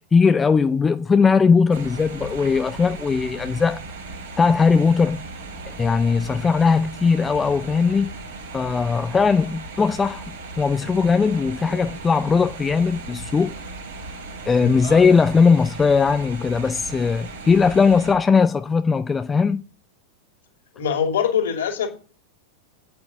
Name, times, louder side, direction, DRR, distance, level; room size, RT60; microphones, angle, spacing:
voice 1, 0.1-3.8 4.4-5.2 5.8-8.1 8.5-10.2 10.6-13.5 14.5-19.6, left 5 dB, 15° left, 0.5 m, -19 dB
sound 1, 1.7-18.1, right 3 dB, 65° right, 3.3 m, -37 dB
voice 2, 20.7-21.9, left 8 dB, 60° left, 2.8 m, -23 dB
8.7 x 8.1 x 7.0 m
figure-of-eight pair, 90°, 0 cm